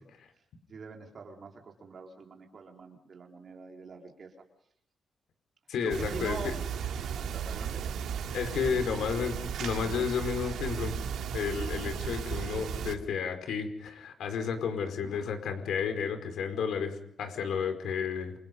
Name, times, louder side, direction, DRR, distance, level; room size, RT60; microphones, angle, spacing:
voice 1, 0.7-4.4 5.8-6.6 7.1-7.9, right 5 dB, 40° right, 1 dB, 4.6 m, -44 dB
voice 2, 5.7-6.4 8.3-10.9 11.3-18.3, left 6 dB, 75° left, 7 dB, 5.1 m, -32 dB
sound 1, 5.9-12.9, right 7 dB, 85° right, 2.9 m, -35 dB
28.5 x 28.5 x 5.6 m, 0.71 s
wide cardioid pair, 175°, 0 cm